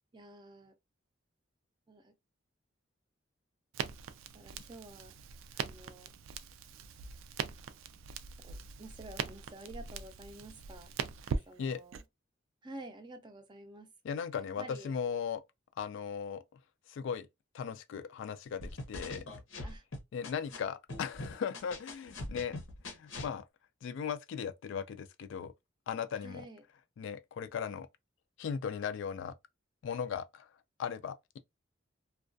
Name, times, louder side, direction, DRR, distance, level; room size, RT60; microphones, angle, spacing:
voice 1, 0.1-0.7 1.9-2.2 4.3-5.1 5.5-6.1 8.4-10.9 11.3-12.0 12.6-13.9 14.4-14.9 19.6-19.8 26.2-26.6, right 2 dB, 25° right, 0.4 m, -50 dB
Crackle, 3.7-12.0, right 6 dB, 85° right, 0.3 m, -41 dB
voice 2, 14.0-15.4 15.8-16.4 16.9-17.3 17.5-19.2 20.1-22.6 22.9-23.4 23.8-25.5 25.9-26.5 27.0-27.9 28.4-29.3 29.8-30.5 30.8-31.4, left 7 dB, 65° left, 0.3 m, -37 dB
sound 1, 18.6-20.6 20.9-23.3, left 2 dB, 85° left, 0.8 m, -42 dB
2.2 x 2.2 x 2.5 m
head